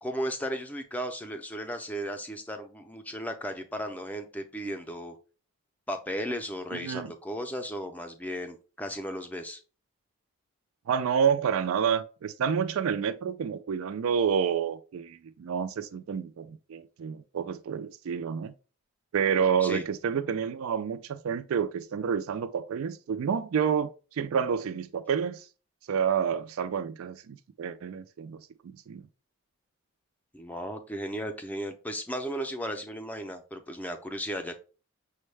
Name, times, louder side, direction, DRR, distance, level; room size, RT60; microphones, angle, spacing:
voice 1, 0.0-5.2 5.9-9.6 19.6-19.8 30.3-34.6, equal, 5° left, 0.4 m, -35 dB
voice 2, 6.7-7.1 10.9-18.5 19.1-25.4 25.9-28.4 28.9-29.0, right 7 dB, 80° right, 0.4 m, -29 dB
6.1 x 2.2 x 3.2 m
head